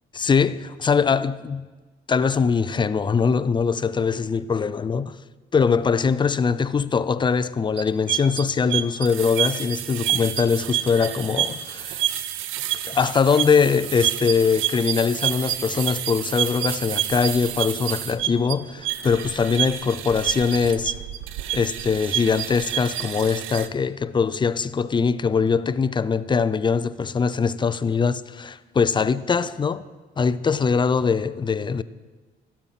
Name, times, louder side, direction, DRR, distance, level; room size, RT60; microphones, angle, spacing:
voice 1, 0.2-1.7 2.1-5.2 5.5-12.0 12.9-20.9 21.5-29.8 30.2-31.8, left 5 dB, 25° left, 0.4 m, -22 dB
sound 1, 7.8-23.7, right 12 dB, 85° right, 0.6 m, -28 dB
12.0 x 8.5 x 5.8 m
cardioid pair, 90°, 20 cm